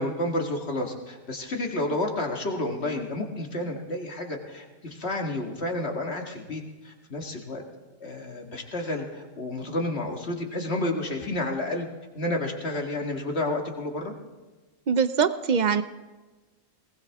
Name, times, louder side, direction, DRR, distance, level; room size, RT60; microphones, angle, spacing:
voice 1, 0.0-7.6 8.0-11.9 12.1-14.1, left 1 dB, 55° left, 2 dB, 2.2 m, -30 dB
voice 2, 14.9-15.8, right 6 dB, 50° right, 12 dB, 0.5 m, -22 dB
20.5 x 19.0 x 3.5 m, 1.2 s
omnidirectional pair, 1.3 m